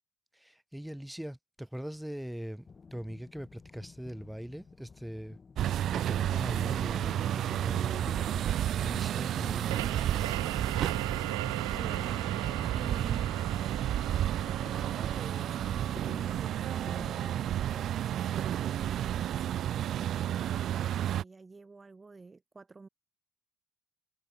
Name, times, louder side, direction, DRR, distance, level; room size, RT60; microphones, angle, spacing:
voice 1, 0.3-5.4 5.7-8.1 8.4-9.7, equal, 5° right, 3.9 m, -42 dB
sound 1, 2.7-17.6, left 5 dB, 35° left, 5.0 m, -52 dB
sound 2, 5.6-21.2, right 11 dB, 60° right, 0.6 m, -31 dB
sound 3, 9.7-19.0, right 20 dB, 85° right, 1.4 m, -41 dB
voice 2, 11.7-12.2 12.7-13.4 14.7-20.5 21.1-22.9, right 3 dB, 25° right, 2.9 m, -49 dB
hypercardioid pair, 55°, 0 cm